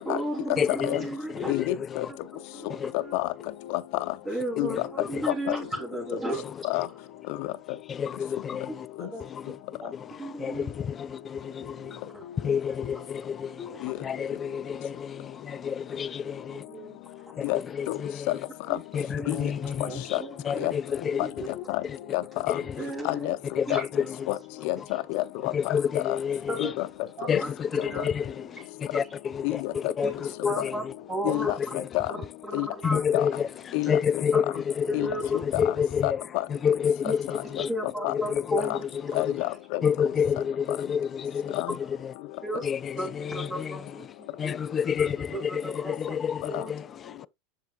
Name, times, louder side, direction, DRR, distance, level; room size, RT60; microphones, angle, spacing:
voice 1, 0.0-1.6 2.1-3.2 4.2-6.7 8.7-9.2 9.8-10.7 12.1-12.2 12.7-12.8 13.6-13.8 15.9-17.0 18.7-18.8 19.1-20.7 21.1-21.7 22.8-23.3 23.7-23.9 24.9-25.0 26.5-26.7 27.2-28.1 30.0-30.1 30.4-30.8 31.1-31.6 32.1-33.0 33.3-33.4 33.9-34.0 34.3-34.4 34.9-35.4 37.0-37.1 37.7-38.8 42.4-42.6 43.0-44.0 44.4-44.6 44.8-46.2 46.5-46.7, right 1 dB, 20° right, 3.3 m, -35 dB
voice 2, 0.6-2.1 2.7-2.9 4.7-5.3 6.8-6.9 7.9-8.9 9.2-9.6 9.9-12.1 12.4-16.7 17.4-18.4 18.9-21.5 21.8-22.0 22.5-22.8 23.6-24.3 24.8-24.9 25.4-26.7 27.3-30.9 31.3-31.9 32.8-36.2 36.5-37.7 38.1-39.4 39.8-42.1 42.6-43.9 44.4-47.3, left 7 dB, 30° left, 0.3 m, -30 dB
voice 3, 1.5-2.1 3.1-3.3 3.7-4.0 4.6-4.7 5.5-5.6 6.6-6.9 7.4-7.5 9.0-9.1 13.8-13.9 17.4-17.6 17.9-18.0 18.3-18.4 18.7-18.8 19.3-19.4 20.1-20.2 20.6-20.7 21.2-21.3 21.7-21.8 22.1-22.6 23.0-23.4 23.7-23.8 24.3-24.4 24.6-26.2 26.6-26.9 28.0-28.1 29.4-29.7 31.2-31.6 31.9-32.1 32.5-32.7 33.1-33.3 33.7-33.9 34.9-35.1 35.5-35.6 36.0-36.4 38.0-38.1 38.7-38.8 39.1-39.8 41.5-41.7 46.5-46.6, left 19 dB, 65° left, 0.8 m, -28 dB
7.3 x 6.9 x 2.4 m
hypercardioid pair, 105°, 0 cm